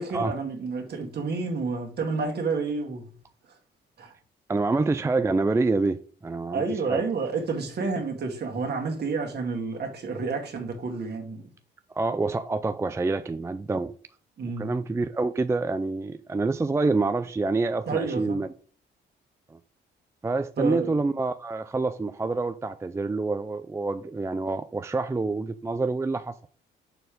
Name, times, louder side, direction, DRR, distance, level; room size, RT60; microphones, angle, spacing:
voice 1, 0.0-3.1 3.5-3.6 4.0-4.2 6.5-11.5 14.4-14.8 17.9-18.4 20.6-21.0, right 4 dB, 55° right, 2.0 m, -30 dB
voice 2, 4.5-6.6 6.9-7.0 12.0-13.9 14.6-18.5 19.5-19.6 20.2-26.4, right 3 dB, 15° right, 0.4 m, -27 dB
6.8 x 4.3 x 5.0 m
cardioid pair, 90°, 20 cm